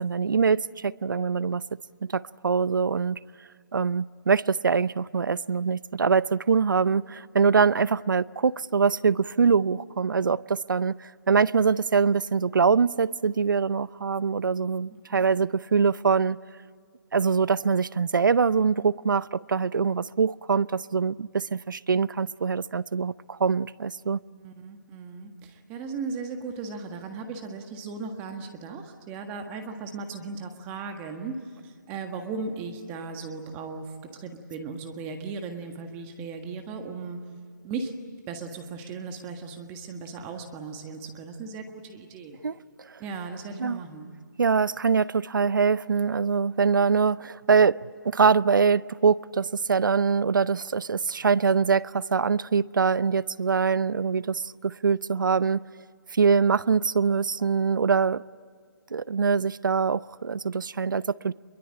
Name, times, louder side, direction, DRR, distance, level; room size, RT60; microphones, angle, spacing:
voice 1, 0.0-1.6 2.1-3.2 3.7-16.4 17.1-24.2 42.4-42.5 43.6-43.8 44.4-47.8 48.0-55.6 56.1-58.2 58.9-61.3, right 5 dB, 75° right, 0.6 m, -23 dB
voice 2, 14.9-15.2 22.0-22.3 24.3-31.4 31.6-37.2 37.6-37.9 38.3-42.4 43.0-44.1, right 4 dB, 15° right, 1.6 m, -37 dB
25.5 x 23.0 x 8.7 m
hypercardioid pair, 165°, 11 cm